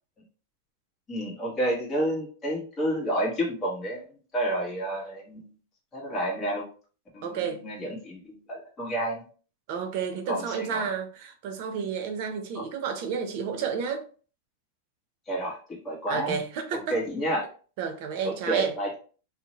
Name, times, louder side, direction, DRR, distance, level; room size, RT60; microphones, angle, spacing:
voice 1, 1.1-5.5 5.9-6.7 7.1-9.2 10.3-10.8 12.5-12.6 15.3-16.4 16.7-17.4 18.2-18.9, right 1 dB, 25° left, 1.3 m, -30 dB
voice 2, 7.2-7.6 9.7-14.1 16.1-17.0 17.8-18.7, right 6 dB, 55° right, 0.6 m, -31 dB
2.7 x 2.1 x 2.8 m
hypercardioid pair, 110°, 0 cm